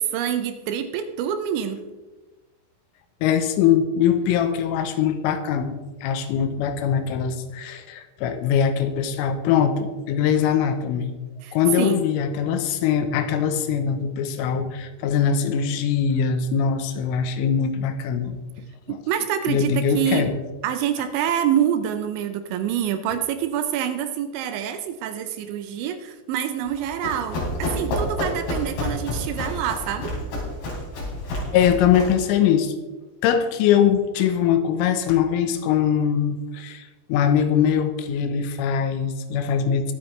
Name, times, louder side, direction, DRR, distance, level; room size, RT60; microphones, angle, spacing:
voice 1, 0.0-1.8 11.4-12.0 18.9-20.3 20.6-30.1, right 9 dB, 80° right, 9 dB, 2.9 m, -26 dB
voice 2, 3.2-11.2 11.5-18.4 18.9-19.0 19.5-20.4 31.5-32.7 33.2-39.9, left 8 dB, 85° left, 9 dB, 3.4 m, -22 dB
Run, 26.7-32.2, left 1 dB, 55° left, 5.0 m, -29 dB
22.0 x 8.2 x 3.2 m, 1.2 s
omnidirectional pair, 5.7 m